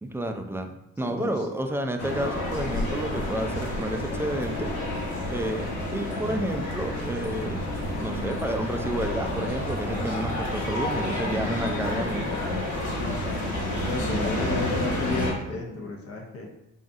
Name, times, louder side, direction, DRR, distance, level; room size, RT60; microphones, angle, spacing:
voice 1, 0.0-0.7 1.0-4.7 5.3-7.7 8.0-12.3, right 1 dB, 10° right, 5 dB, 0.3 m, -30 dB
voice 2, 1.0-1.5 11.6-12.0 12.9-13.5 13.8-16.5, left 3 dB, 50° left, 0 dB, 0.7 m, -33 dB
sound 1, 2.0-15.3, left 1 dB, 75° left, 1.1 m, -29 dB
3.9 x 3.5 x 2.5 m, 0.89 s
cardioid pair, 90°, 30 cm